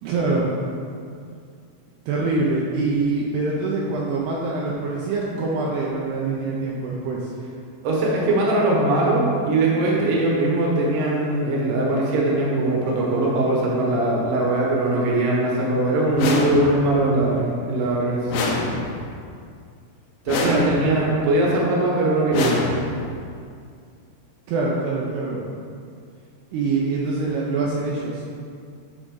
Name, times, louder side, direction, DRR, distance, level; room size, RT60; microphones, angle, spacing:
voice 1, 0.0-0.5 2.1-7.3 20.4-20.7 24.5-25.4 26.5-28.2, right 3 dB, 80° right, -4 dB, 2.6 m, -24 dB
voice 2, 7.8-18.5 20.3-22.6, right 2 dB, 65° right, -4 dB, 2.3 m, -21 dB
sound 1, 16.2-17.0 18.3-19.2 20.3-21.1 22.3-23.2, left 3 dB, 90° left, 3.0 m, -27 dB
11.0 x 3.9 x 3.8 m, 2.3 s
omnidirectional pair, 5.1 m